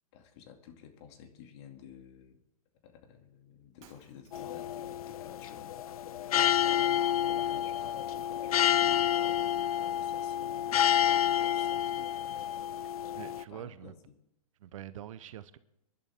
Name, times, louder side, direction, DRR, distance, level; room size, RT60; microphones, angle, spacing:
voice 1, 0.1-2.4 2.8-9.4 9.9-12.4 13.5-14.0, left 8 dB, 50° left, 2.4 m, -52 dB
Shatter, 3.8-4.8, right 8 dB, 35° right, 2.6 m, -61 dB
sound 1, 4.3-13.4, left 10 dB, 70° left, 0.5 m, -29 dB
voice 2, 13.1-13.9 14.6-15.6, right 11 dB, 60° right, 0.9 m, -45 dB
25.5 x 11.0 x 3.6 m
hypercardioid pair, 135°, 19 cm